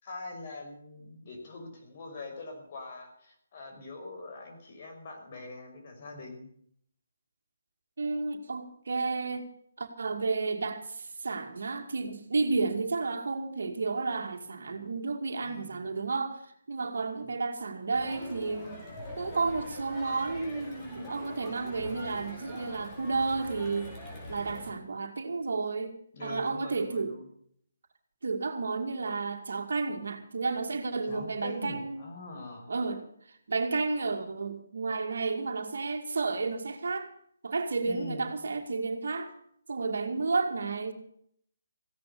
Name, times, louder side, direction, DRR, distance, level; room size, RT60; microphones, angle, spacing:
voice 1, 0.0-6.5 15.4-15.8 26.1-27.3 31.1-32.7 37.8-38.3, left 2 dB, 45° left, 2 dB, 5.8 m, -43 dB
voice 2, 8.0-9.5 9.8-18.8 19.2-23.9 24.3-25.9 26.2-27.1 28.2-32.0 32.7-33.0 33.5-37.1 37.4-39.3 39.7-40.9, right 4 dB, 70° right, 6 dB, 2.4 m, -32 dB
Crowd, 17.9-24.7, left 1 dB, 20° left, 5.3 m, -43 dB
16.0 x 10.5 x 6.8 m, 0.65 s
figure-of-eight pair, 150°, 0 cm